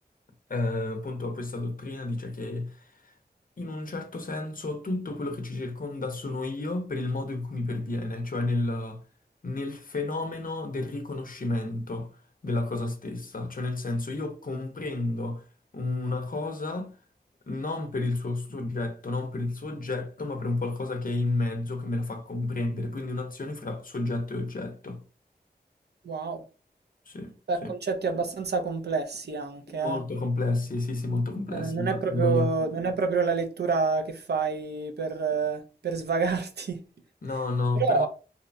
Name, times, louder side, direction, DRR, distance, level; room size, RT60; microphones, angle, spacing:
voice 1, 0.5-3.1 3.6-9.0 9.4-12.1 12.4-15.4 15.7-17.0 17.5-25.0 27.1-27.3 27.6-27.7 29.7-32.5 37.2-38.1, left 2 dB, 55° left, 0.5 m, -31 dB
voice 2, 26.0-26.4 27.5-30.0 31.5-36.8 37.8-38.1, right 4 dB, 75° right, 0.5 m, -28 dB
2.7 x 2.1 x 2.5 m
wide cardioid pair, 55°, 17 cm